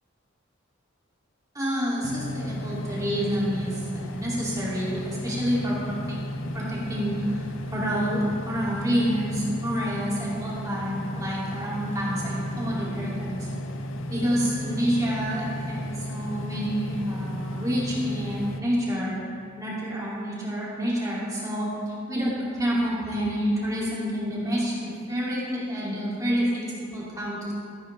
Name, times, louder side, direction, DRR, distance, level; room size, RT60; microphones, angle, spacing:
voice 1, 1.5-6.2 6.5-7.4 7.7-13.5 14.1-19.2 19.6-21.7 22.1-27.5, equal, 15° right, -7 dB, 2.6 m, -28 dB
sound 1, 2.0-18.6, equal, 65° left, 0.6 m, -34 dB
15.0 x 9.2 x 3.3 m, 2.3 s
head